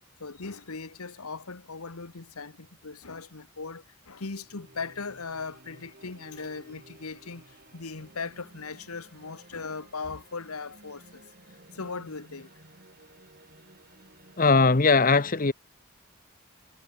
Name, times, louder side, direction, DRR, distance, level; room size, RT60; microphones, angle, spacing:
voice 1, 0.2-7.4 7.7-11.0 11.8-12.5, left 4 dB, 85° left, 1.4 m, -38 dB
sound 1, 4.4-14.6, right 1 dB, 45° right, 6.1 m, -55 dB
voice 2, 14.4-15.5, left 4 dB, 40° left, 0.9 m, -20 dB
head